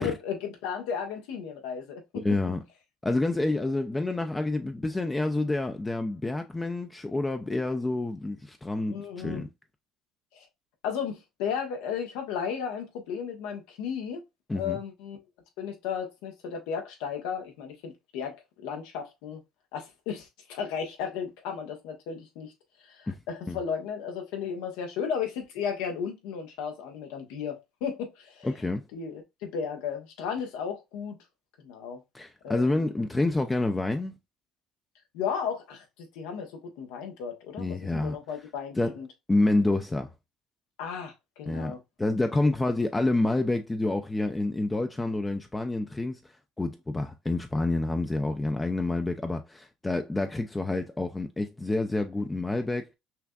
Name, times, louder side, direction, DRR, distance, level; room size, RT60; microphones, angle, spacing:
voice 1, 0.0-2.4 8.9-9.4 10.3-10.5 10.8-14.2 14.5-15.2 15.6-19.4 19.7-22.5 22.9-28.5 28.9-31.2 31.6-32.0 32.4-32.9 35.1-35.8 36.1-39.1 40.8-41.8, left 7 dB, 85° left, 1.0 m, -34 dB
voice 2, 2.1-2.6 3.0-9.5 14.5-14.8 23.1-23.2 23.5-23.6 28.4-28.9 32.1-34.1 37.6-38.2 38.8-39.0 39.3-40.1 41.5-46.2 46.6-52.9, left 2 dB, 15° left, 0.4 m, -28 dB
5.7 x 2.5 x 2.3 m
cardioid pair, 105°, 0 cm